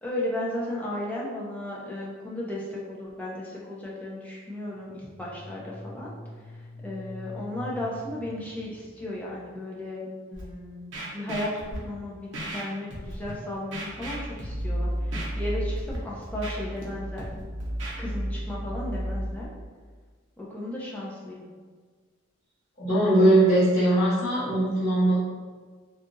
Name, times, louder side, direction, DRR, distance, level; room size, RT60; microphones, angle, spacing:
voice 1, 0.0-6.1 6.5-10.0 10.3-17.3 18.0-19.5 20.4-21.5, left 1 dB, 5° left, -5 dB, 0.4 m, -35 dB
sound 1, 4.8-9.6, left 1 dB, 35° right, 0.9 m, -44 dB
Scratching (performance technique), 10.3-10.4 10.9-11.8 12.3-12.6 12.9-13.3 13.7-14.6 15.1-15.3 15.8-16.0 16.2-16.8 17.2-17.9, right 1 dB, 60° right, 0.6 m, -37 dB
sound 2, 13.9-19.5, equal, 75° left, 0.6 m, -32 dB
voice 2, 22.8-25.2, right 1 dB, 50° left, -14 dB, 1.3 m, -20 dB
2.7 x 2.4 x 2.5 m, 1.5 s
head